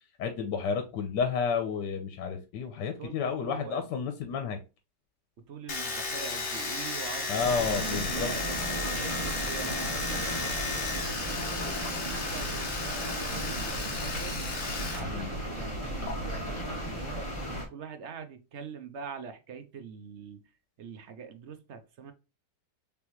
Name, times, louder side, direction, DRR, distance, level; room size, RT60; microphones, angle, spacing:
voice 1, 0.2-4.6 7.3-8.3 15.0-15.4, left 6 dB, 80° left, 1.4 m, -31 dB
voice 2, 2.8-3.8 5.4-8.4 8.8-11.6 12.0-14.4 14.9-17.3 17.7-20.4 20.8-22.1, right 6 dB, 60° right, 0.8 m, -43 dB
Domestic sounds home sounds, 5.7-15.0 15.3-16.1, left 3 dB, 45° left, 1.3 m, -34 dB
sound 1, 7.4-17.6, right 1 dB, 20° left, 1.5 m, -35 dB
4.2 x 3.5 x 3.0 m
omnidirectional pair, 1.8 m